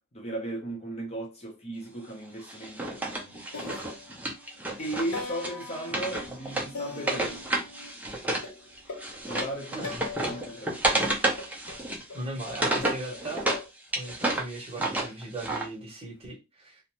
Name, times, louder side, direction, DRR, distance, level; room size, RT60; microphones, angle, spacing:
voice 1, 0.1-3.9 4.8-7.5 9.2-9.9 10.3-10.9, right 1 dB, 30° left, 0.7 m, -36 dB
Wood, 2.5-8.5 8.8-13.6 13.9-15.7, right 2 dB, 5° right, 0.5 m, -31 dB
sound 1, 3.0-3.2 3.5-4.6 5.1-7.9 8.4-10.6 11.4-13.7, left 4 dB, 75° left, 0.7 m, -42 dB
voice 2, 9.7-10.0 12.1-13.5 13.9-16.8, right 1 dB, 25° right, 0.9 m, -38 dB
2.5 x 2.1 x 2.9 m
head